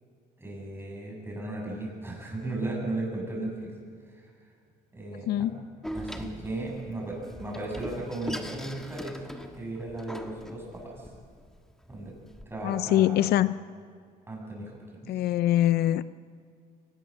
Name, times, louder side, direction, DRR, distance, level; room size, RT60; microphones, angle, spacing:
voice 1, 0.4-3.7 4.1-4.3 4.9-5.5 5.9-11.1 11.9-12.1 12.5-13.2 14.3-15.2, right 2 dB, 15° right, -2 dB, 7.9 m, -36 dB
voice 2, 5.1-5.6 12.6-13.6 15.1-16.0, left 13 dB, 70° left, 15 dB, 0.5 m, -24 dB
Door, 5.8-12.4, equal, 5° left, 1.6 m, -41 dB
23.5 x 19.5 x 6.7 m, 2.1 s
cardioid pair, 110°, 17 cm